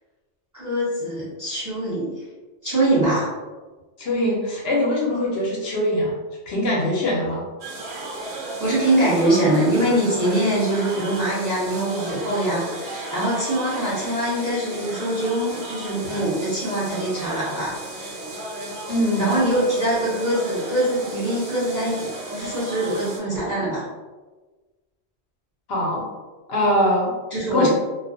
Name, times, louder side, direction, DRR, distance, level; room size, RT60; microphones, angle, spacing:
voice 1, 0.5-2.1 2.6-3.3 8.6-17.8 19.2-23.8 27.3-27.7, right 1 dB, 20° right, -9 dB, 0.7 m, -23 dB
voice 2, 4.0-6.1 6.5-7.4 16.0-16.1 18.9-19.4 25.7-26.1 26.5-27.1 27.5-27.7, left 1 dB, 70° left, -3 dB, 0.9 m, -22 dB
sound 1, 7.6-23.2, right 2 dB, 70° right, 0.8 m, -34 dB
2.3 x 2.2 x 2.5 m, 1.2 s
omnidirectional pair, 1.1 m